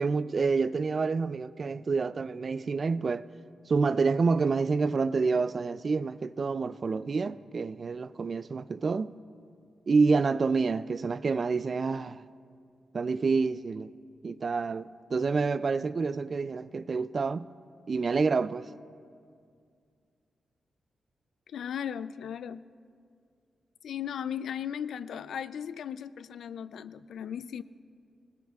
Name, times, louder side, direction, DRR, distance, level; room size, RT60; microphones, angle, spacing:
voice 1, 0.0-3.3 3.7-9.1 9.9-12.2 12.9-13.9 14.2-17.5 17.9-18.7, right 4 dB, 35° right, 0.3 m, -28 dB
voice 2, 21.5-22.6 23.8-27.6, left 8 dB, 90° left, 0.4 m, -36 dB
26.0 x 19.5 x 2.4 m
wide cardioid pair, 165°, 0 cm